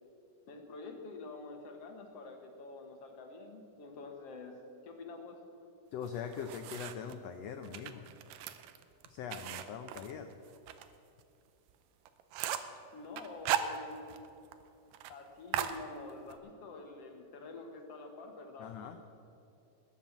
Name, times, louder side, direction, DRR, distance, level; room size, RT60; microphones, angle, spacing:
voice 1, 0.5-4.6 4.8-5.4 12.9-14.1 15.1-18.7, left 3 dB, 60° left, 4 dB, 1.9 m, -47 dB
voice 2, 5.9-8.0 9.1-10.3 18.6-19.0, left 7 dB, 85° left, 7 dB, 1.4 m, -42 dB
sound 1, 6.0-7.2 7.6-10.9 11.2-11.3 11.7-11.8 12.1-12.8 13.2-14.3 14.5-14.6 14.9-15.1 15.5-16.4, right 11 dB, 85° right, 2.4 m, -37 dB
20.0 x 7.4 x 7.3 m, 2.7 s
omnidirectional pair, 3.8 m